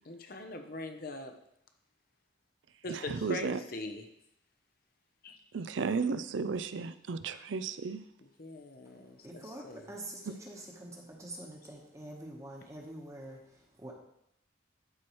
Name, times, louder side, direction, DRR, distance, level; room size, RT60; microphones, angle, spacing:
voice 1, 0.1-1.3 2.8-4.1 5.2-5.4 8.4-9.2 9.6-9.8, left 2 dB, 50° left, 6 dB, 0.8 m, -41 dB
voice 2, 2.9-3.6 5.5-8.0, right 5 dB, 75° right, 12 dB, 0.5 m, -34 dB
voice 3, 8.8-13.9, right 1 dB, 15° right, -1 dB, 1.1 m, -46 dB
12.5 x 4.6 x 3.1 m, 0.76 s
head